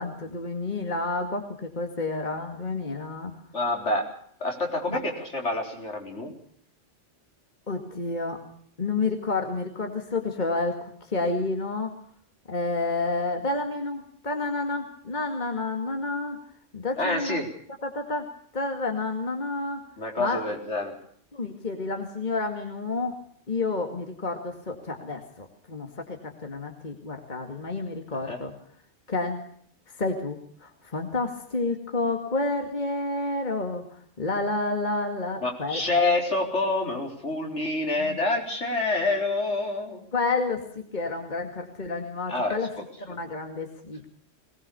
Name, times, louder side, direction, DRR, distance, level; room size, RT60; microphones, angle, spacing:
voice 1, 0.0-3.3 4.9-5.0 7.7-8.4 8.8-11.9 12.5-16.4 16.7-17.4 17.8-18.3 18.5-19.8 20.2-20.4 21.3-23.2 23.5-28.5 29.1-29.4 29.9-33.9 34.2-35.8 38.0-38.2 40.1-42.7 43.0-44.1, left 3 dB, 40° left, 4 dB, 2.4 m, -30 dB
voice 2, 3.5-4.1 4.4-6.3 17.0-17.5 20.0-20.9 28.2-28.4 35.4-40.1 42.3-42.6, left 2 dB, 65° left, 2 dB, 4.5 m, -27 dB
21.0 x 20.0 x 6.9 m, 0.63 s
omnidirectional pair, 1.3 m